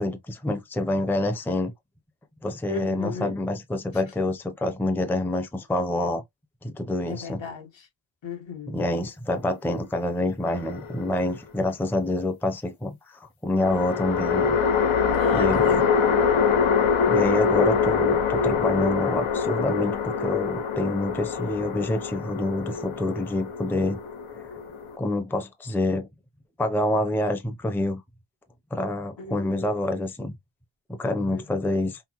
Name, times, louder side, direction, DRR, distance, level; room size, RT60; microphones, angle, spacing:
voice 1, 0.0-1.7 2.4-6.2 6.6-7.4 8.7-14.6 15.3-15.8 17.1-24.0 25.0-26.1 26.6-28.0 28.7-30.4 30.9-32.0, left 1 dB, 5° left, 0.5 m, -27 dB
voice 2, 2.7-3.3 7.1-7.9 8.2-8.8 15.1-16.2 29.2-29.7 31.3-31.4, left 5 dB, 70° left, 1.6 m, -35 dB
sound 1, 10.5-11.3 13.6-25.0, left 6 dB, 85° left, 1.0 m, -24 dB
5.7 x 2.1 x 2.9 m
wide cardioid pair, 150°, 47 cm